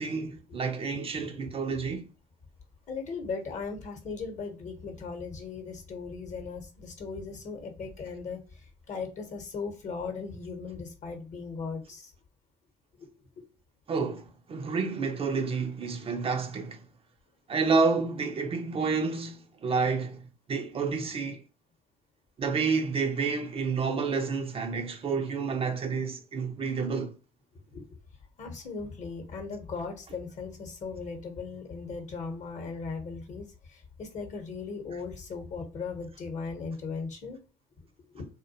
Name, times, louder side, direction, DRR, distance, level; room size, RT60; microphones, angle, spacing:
voice 1, 0.0-2.1 13.9-16.9 17.5-21.4 22.4-27.2, right 4 dB, 35° right, 0.5 m, -29 dB
voice 2, 2.9-12.1 13.0-13.1 13.4-13.5 27.7-27.8 28.4-37.4 37.8-38.3, left 4 dB, 50° left, 0.9 m, -38 dB
2.3 x 2.1 x 2.6 m
hypercardioid pair, 55°, 16 cm